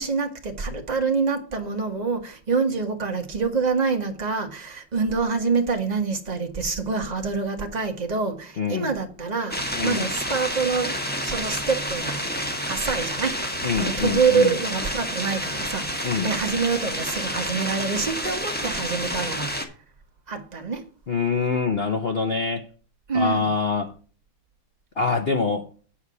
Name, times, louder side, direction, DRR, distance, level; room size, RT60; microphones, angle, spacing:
voice 1, 0.0-10.9 11.2-12.3 12.6-13.5 13.8-19.5 20.3-20.8 23.1-23.5, right 4 dB, 25° right, 1.3 m, -26 dB
voice 2, 8.6-8.9 9.7-10.1 13.6-14.5 16.0-16.3 21.1-22.7 23.1-23.9 25.0-25.7, left 5 dB, 80° left, 0.5 m, -25 dB
sound 1, 9.5-19.6, equal, 5° left, 1.2 m, -29 dB
8.8 x 4.8 x 6.8 m
omnidirectional pair, 2.3 m